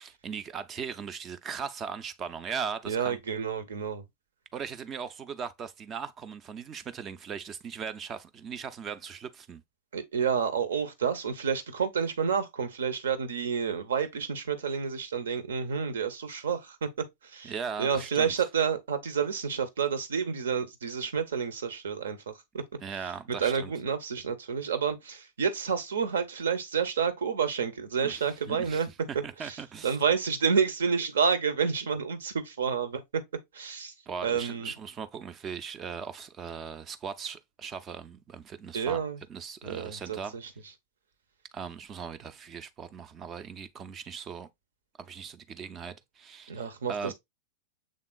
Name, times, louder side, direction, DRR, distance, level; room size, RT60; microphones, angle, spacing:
voice 1, 0.0-3.2 4.5-9.6 17.4-18.5 22.8-23.7 28.0-30.0 34.1-39.0 39.3-40.4 41.5-44.5 45.0-46.5 46.9-47.1, right 6 dB, 25° right, 0.5 m, -39 dB
voice 2, 2.9-4.0 9.9-16.9 17.3-17.5 17.8-22.6 23.4-28.9 29.4-29.6 29.8-33.0 33.5-33.9 34.2-34.7 38.7-39.2 39.6-40.2 46.5-47.1, right 6 dB, 65° right, 0.8 m, -29 dB
6.5 x 3.6 x 2.2 m
figure-of-eight pair, 90°, 0 cm